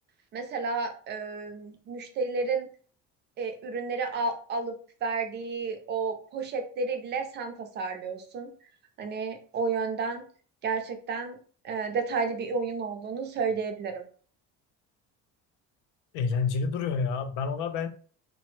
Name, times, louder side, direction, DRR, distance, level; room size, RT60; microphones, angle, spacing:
voice 1, 0.3-2.7 3.4-4.7 5.0-8.5 9.0-10.2 10.6-11.4 11.6-14.0, right 4 dB, 35° right, 5 dB, 0.4 m, -31 dB
voice 2, 16.1-17.9, left 5 dB, 80° left, 8 dB, 0.5 m, -28 dB
3.0 x 2.1 x 3.0 m, 0.43 s
cardioid pair, 170°, 31 cm